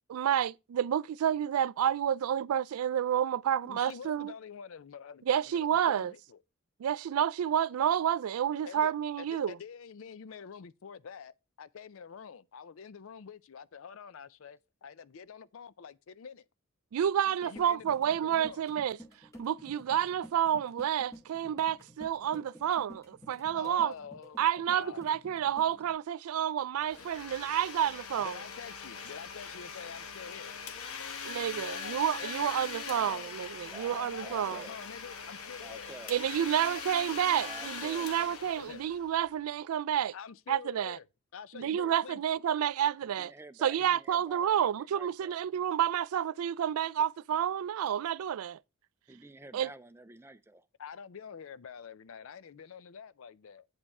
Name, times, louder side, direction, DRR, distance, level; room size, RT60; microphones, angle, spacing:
voice 1, 0.1-4.3 5.3-6.1 6.8-9.6 16.9-19.0 19.4-23.9 24.4-28.4 31.2-34.7 36.1-40.1 40.5-41.0 41.5-43.3 43.6-48.6 49.5-49.7, right 9 dB, 85° right, 0.3 m, -30 dB
voice 2, 3.6-6.4 8.7-16.5 17.4-18.6 23.5-25.1 28.2-30.5 31.5-32.6 32.9-33.3 33.6-35.9 38.6-38.8 40.1-41.0 41.3-42.2 50.8-53.7, left 6 dB, 70° left, 0.4 m, -47 dB
sound 1, 17.3-25.9, equal, 15° left, 1.3 m, -53 dB
Domestic sounds home sounds, 26.8-39.4, left 5 dB, 90° left, 1.0 m, -42 dB
voice 3, 33.7-34.8 35.6-36.1 37.4-38.1 41.6-42.0 43.0-45.4 49.1-50.7, right 2 dB, 10° right, 0.4 m, -50 dB
8.6 x 5.2 x 4.7 m
head